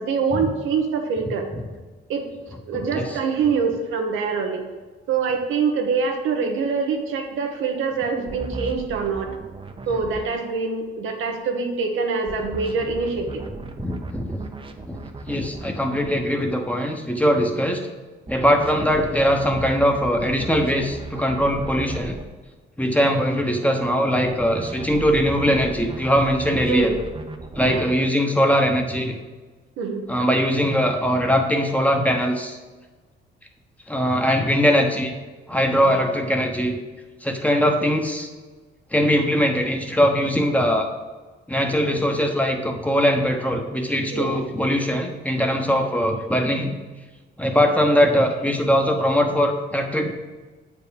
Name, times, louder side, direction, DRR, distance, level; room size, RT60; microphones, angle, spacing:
voice 1, 0.0-1.5 2.1-2.3 2.7-4.7 5.1-9.3 9.9-13.4 26.7-27.0 27.6-27.8 29.8-30.1 35.9-36.0 44.1-44.3, right 5 dB, 90° right, 3 dB, 1.1 m, -24 dB
voice 2, 2.7-3.2 13.8-14.4 14.8-15.0 15.3-17.8 18.3-22.2 22.8-26.9 27.5-29.2 30.1-32.6 33.9-35.1 35.5-36.8 37.2-38.3 38.9-40.9 41.5-46.7 47.4-50.1, equal, 5° left, 3 dB, 1.0 m, -21 dB
sound 1, 8.3-10.3 12.3-16.2 18.3-22.2 24.3-28.0, right 3 dB, 25° right, 0.8 m, -36 dB
7.8 x 4.8 x 5.2 m, 1.3 s
cardioid pair, 90°, 20 cm